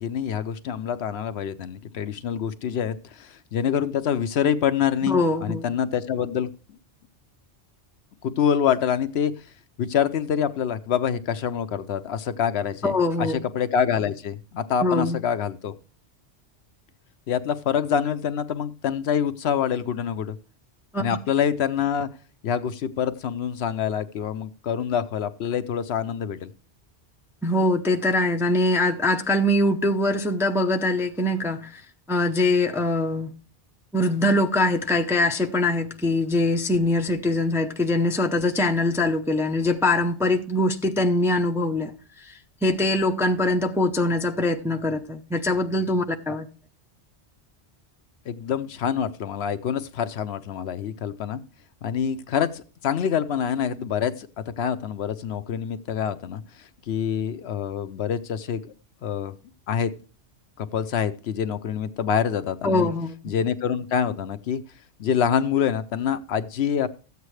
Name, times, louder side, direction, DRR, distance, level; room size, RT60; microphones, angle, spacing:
voice 1, 0.0-6.5 8.2-9.3 9.8-15.7 17.3-20.4 21.0-22.1 22.4-26.5 48.3-51.4 51.8-58.7 59.0-59.4 59.7-59.9 60.6-62.9 63.2-64.6 65.0-66.9, left 8 dB, 70° left, 0.8 m, -26 dB
voice 2, 5.1-5.6 12.8-13.4 14.8-15.2 20.9-21.0 27.4-31.8 32.1-33.3 33.9-41.9 42.2-46.5 62.6-63.3, left 2 dB, 5° right, 0.5 m, -23 dB
13.0 x 8.2 x 3.2 m
omnidirectional pair, 1.2 m